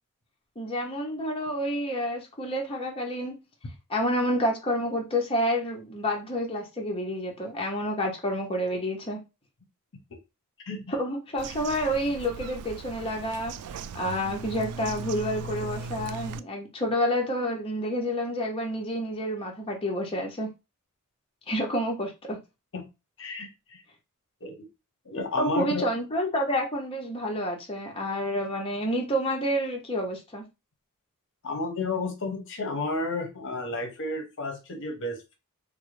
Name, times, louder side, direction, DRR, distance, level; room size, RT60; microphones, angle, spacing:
voice 1, 0.6-3.3 3.9-9.2 10.9-13.5 13.9-20.5 21.5-22.4 25.4-30.4, equal, 25° left, 0.7 m, -29 dB
Bird vocalization bird call bird song, 11.4-16.4, right 4 dB, 80° right, 0.3 m, -38 dB
voice 2, 23.2-23.8 24.4-24.7 25.1-25.8 31.4-35.3, left 2 dB, 60° left, 0.8 m, -32 dB
3.6 x 2.1 x 3.1 m
head